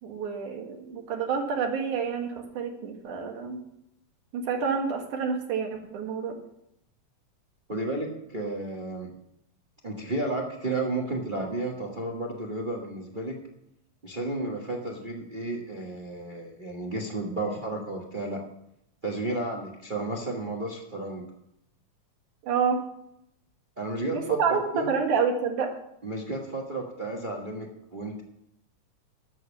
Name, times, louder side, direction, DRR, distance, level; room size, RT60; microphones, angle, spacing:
voice 1, 0.0-3.6 4.3-6.4 22.4-22.8 24.1-25.7, right 6 dB, 80° right, 3 dB, 3.1 m, -28 dB
voice 2, 7.7-9.1 9.8-13.4 14.0-18.4 19.0-21.2 23.8-24.9 26.0-28.2, right 2 dB, 55° right, -1 dB, 0.5 m, -32 dB
12.0 x 7.2 x 7.0 m, 0.80 s
omnidirectional pair, 3.5 m